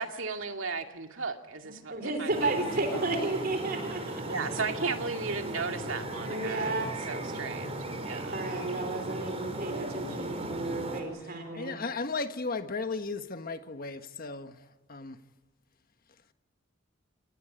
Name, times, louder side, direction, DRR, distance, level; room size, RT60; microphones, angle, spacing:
voice 1, 0.0-2.6 2.9-3.1 4.3-8.4, right 4 dB, 80° right, 2.3 m, -36 dB
voice 2, 1.6-4.6 6.2-6.9 8.3-11.8, right 2 dB, 50° right, 3.8 m, -33 dB
sound 1, 2.3-11.0, right 1 dB, 30° right, 5.2 m, -37 dB
voice 3, 11.2-14.6 14.9-15.2, left 3 dB, 50° left, 1.5 m, -35 dB
29.0 x 19.5 x 9.0 m
head